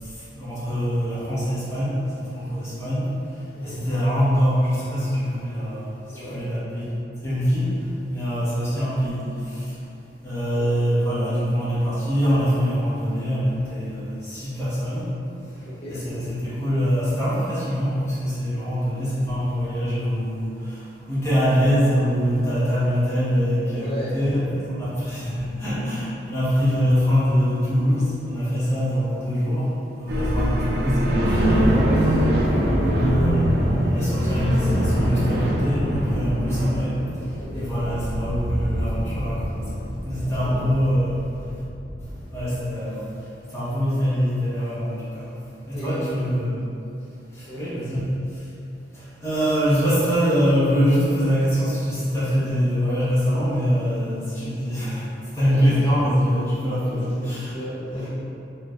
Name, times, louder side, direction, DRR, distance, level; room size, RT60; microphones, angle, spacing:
voice 1, 0.0-3.2 3.6-6.9 7.2-9.8 10.2-15.1 15.9-24.4 24.8-29.7 30.0-41.2 42.3-45.3 45.7-46.6 47.3-48.4 48.9-55.0 55.3-57.6 57.9-58.0, equal, 15° left, -12 dB, 1.3 m, -24 dB
voice 2, 3.5-3.8 6.1-6.4 10.5-10.7 15.6-16.1 23.7-24.5 37.4-37.7 40.2-40.7 45.7-46.2 47.5-47.9 55.4-55.8 56.8-58.1, equal, 30° left, -10 dB, 0.9 m, -36 dB
sound 1, 30.1-42.5, equal, 65° right, 0.5 m, -24 dB
4.3 x 3.1 x 2.4 m, 2.8 s
head